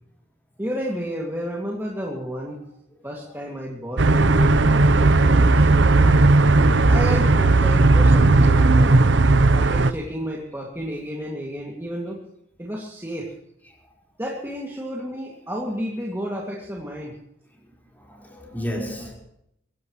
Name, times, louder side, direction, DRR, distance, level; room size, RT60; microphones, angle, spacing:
voice 1, 0.6-2.6 3.0-6.3 6.9-9.0 9.5-12.2 12.6-13.3 14.2-17.2, equal, 15° right, 2.3 m, -31 dB
voice 2, 3.0-3.4 4.0-4.3 5.9-6.2 6.9-7.1 8.6-8.7 9.4-9.5 17.6-19.2, equal, 10° left, 4.7 m, -35 dB
sound 1, 4.0-9.9, right 2 dB, 75° right, 0.8 m, -16 dB
24.5 x 16.5 x 3.2 m
head